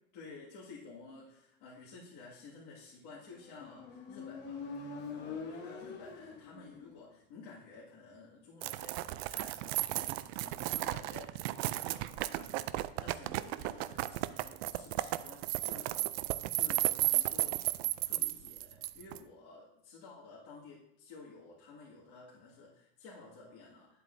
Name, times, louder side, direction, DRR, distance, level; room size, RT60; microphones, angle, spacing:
voice 1, 0.1-24.0, left 3 dB, 60° left, -6 dB, 2.1 m, -53 dB
Motorcycle, 3.4-7.0, left 4 dB, 35° left, 1.1 m, -44 dB
sound 1, 8.6-19.2, right 17 dB, 80° right, 0.5 m, -34 dB
9.6 x 8.0 x 2.6 m, 0.84 s
cardioid pair, 165°, 31 cm